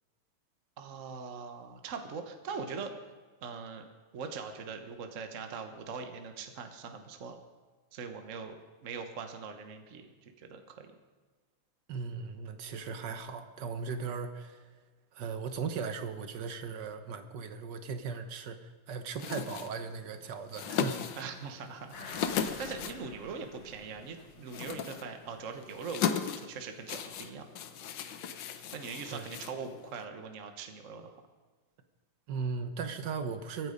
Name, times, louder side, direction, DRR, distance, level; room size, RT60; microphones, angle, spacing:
voice 1, 0.8-3.0 3.4-3.9 4.1-7.4 7.9-8.5 8.8-10.9 21.2-27.4 28.7-31.2, right 5 dB, 45° right, 6 dB, 1.3 m, -42 dB
voice 2, 11.9-14.7 15.1-21.0 29.1-29.2 32.3-33.7, right 5 dB, 60° right, 9 dB, 1.6 m, -37 dB
sound 1, 19.1-30.1, left 8 dB, 65° left, 1.4 m, -38 dB
sound 2, 21.9-24.8 25.2-25.3, left 4 dB, 85° left, 2.9 m, -48 dB
23.0 x 9.6 x 5.2 m, 1.4 s
omnidirectional pair, 2.4 m